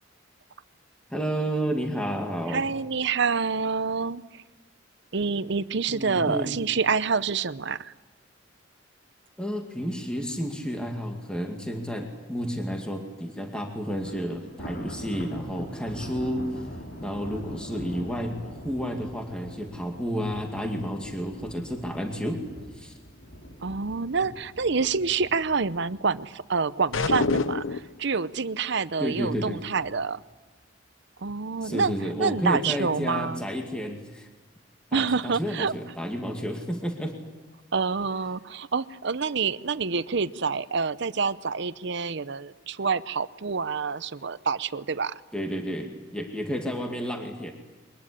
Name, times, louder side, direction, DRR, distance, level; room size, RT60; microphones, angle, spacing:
voice 1, 1.1-2.7 5.9-6.5 9.4-16.5 17.0-22.4 22.7-22.9 29.0-29.6 31.6-34.3 34.9-37.2 45.3-47.5, equal, 5° left, 3 dB, 2.3 m, -31 dB
voice 2, 2.5-4.4 5.1-7.9 23.6-30.2 31.2-33.4 34.9-35.7 37.7-45.1, right 5 dB, 60° right, 15 dB, 0.8 m, -27 dB
Thunder, 14.0-27.3 27.7-28.0 28.4-28.5 29.3-29.9, equal, 65° left, 4.2 m, -42 dB
sound 1, 26.9-28.0, left 3 dB, 85° left, 0.9 m, -26 dB
23.5 x 20.0 x 9.9 m, 1.2 s
head